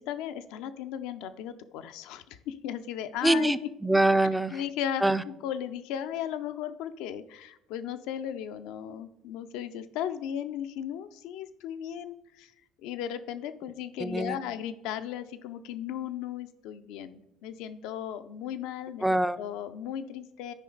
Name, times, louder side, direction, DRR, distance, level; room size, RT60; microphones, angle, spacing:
voice 1, 0.0-3.5 4.5-12.5 12.8-19.1 19.4-20.5, left 10 dB, 75° left, 10 dB, 0.5 m, -36 dB
voice 2, 3.2-4.6 5.0-5.2 14.0-14.4 19.0-19.4, right 1 dB, 5° right, 12 dB, 0.5 m, -24 dB
9.7 x 5.0 x 3.9 m, 0.84 s
hypercardioid pair, 65°, 0 cm